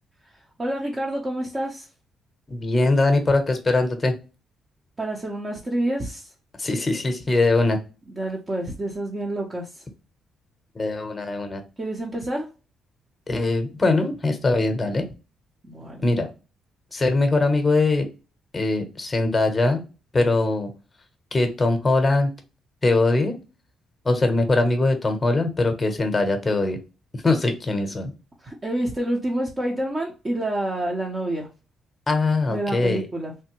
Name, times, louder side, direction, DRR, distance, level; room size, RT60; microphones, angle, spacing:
voice 1, 0.3-1.9 5.0-6.3 8.2-9.8 11.8-12.5 15.6-16.0 28.4-31.5 32.5-33.3, right 1 dB, 25° right, -2 dB, 0.7 m, -28 dB
voice 2, 2.5-4.1 6.6-7.8 10.7-11.6 13.3-15.0 16.0-16.3 16.9-18.1 18.5-19.8 20.1-20.7 21.3-22.3 22.8-23.4 24.0-26.8 27.1-28.1 32.1-33.1, left 2 dB, 20° left, 6 dB, 0.8 m, -21 dB
3.3 x 2.1 x 3.0 m, 0.31 s
cardioid pair, 90°, 0 cm